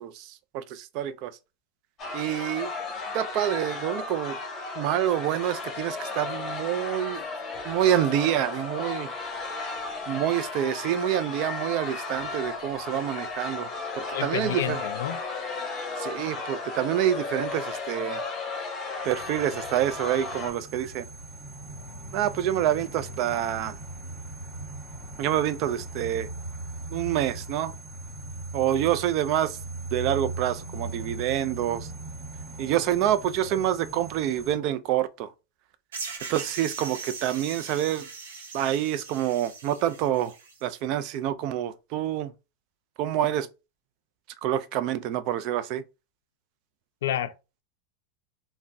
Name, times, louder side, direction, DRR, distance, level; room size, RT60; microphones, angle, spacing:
voice 1, 0.0-1.3 2.1-2.7 3.1-4.4 4.8-7.2 7.6-9.1 10.1-14.8 16.0-18.2 19.0-21.1 22.1-23.8 25.2-26.3 26.9-27.7 28.5-29.6 29.9-31.9 32.6-35.3 36.3-38.1 38.5-40.3 40.6-42.3 43.0-43.5 44.4-45.8, right 11 dB, 50° right, 0.4 m, -27 dB
sound 1, 2.0-20.5, left 3 dB, 30° left, 1.0 m, -34 dB
voice 2, 14.1-15.2 47.0-47.3, left 11 dB, 80° left, 0.4 m, -29 dB
sound 2, 19.0-34.5, right 2 dB, 25° right, 1.7 m, -39 dB
sound 3, 35.9-40.6, right 4 dB, 85° right, 0.8 m, -40 dB
3.4 x 2.1 x 2.6 m
hypercardioid pair, 125°, 0 cm